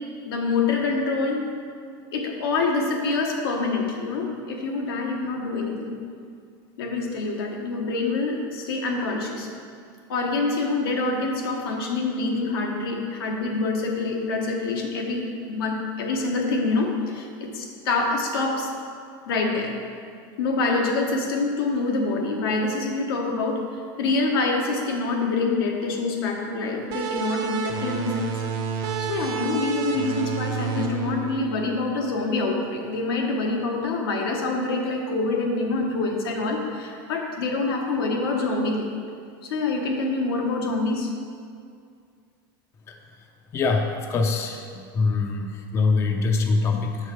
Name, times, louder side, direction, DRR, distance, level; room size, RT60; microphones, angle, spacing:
voice 1, 0.2-1.4 2.1-6.0 6.8-9.5 10.1-18.7 19.3-19.8 20.4-23.7 24.0-28.4 28.8-38.9 39.4-41.1, left 3 dB, 85° left, 1 dB, 1.0 m, -26 dB
sound 1, 26.9-32.2, right 6 dB, 60° right, 0.8 m, -30 dB
voice 2, 43.5-44.6 44.9-47.0, left 4 dB, 25° left, 3 dB, 0.4 m, -23 dB
6.4 x 4.7 x 4.4 m, 2.2 s
supercardioid pair, 135°, 12 cm